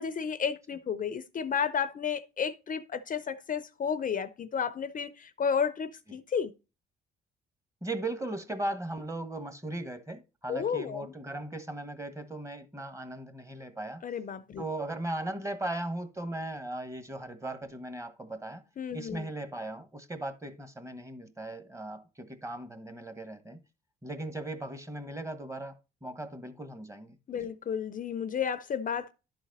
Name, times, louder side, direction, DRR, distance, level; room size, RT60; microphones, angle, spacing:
voice 1, 0.0-6.5 10.5-11.1 14.0-14.6 18.8-19.3 27.3-29.1, left 7 dB, 40° left, 0.6 m, -32 dB
voice 2, 7.8-14.1 14.6-18.6 18.9-23.6 24.0-27.5, right 1 dB, 15° right, 1.4 m, -38 dB
11.5 x 4.1 x 4.0 m
cardioid pair, 90°, 20 cm